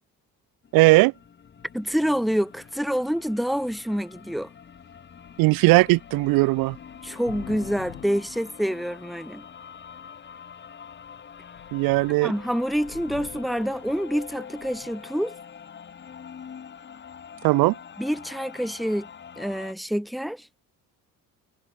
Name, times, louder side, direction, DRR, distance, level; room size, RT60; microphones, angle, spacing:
sound 1, 0.6-19.7, left 7 dB, 30° left, 2.9 m, -44 dB
voice 1, 0.7-1.1 5.4-6.8 11.7-12.3 17.4-17.7, right 23 dB, 85° right, 0.5 m, -18 dB
voice 2, 1.7-4.5 7.0-9.4 12.2-15.3 18.0-19.1 19.4-20.5, equal, ahead, 1.2 m, -27 dB
Thunder / Rain, 4.8-4.9 5.2-9.3 10.0-10.5 10.9-11.1 11.3-15.1, left 18 dB, 90° left, 4.2 m, -48 dB
cardioid pair, 155°, 35 cm